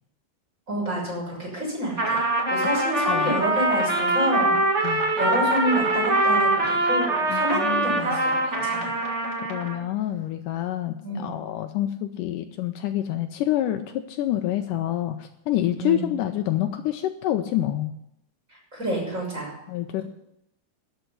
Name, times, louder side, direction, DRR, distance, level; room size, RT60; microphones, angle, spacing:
voice 1, 0.7-9.0 11.0-11.3 15.8-16.1 18.5-19.5, right 1 dB, 20° right, -3 dB, 6.5 m, -29 dB
Trumpet, 1.9-9.8, right 2 dB, 35° right, 1.0 m, -23 dB
voice 2, 7.3-8.2 9.5-17.9 19.7-20.0, left 13 dB, 90° left, 7 dB, 1.9 m, -27 dB
12.5 x 6.9 x 9.8 m, 0.80 s
omnidirectional pair, 4.5 m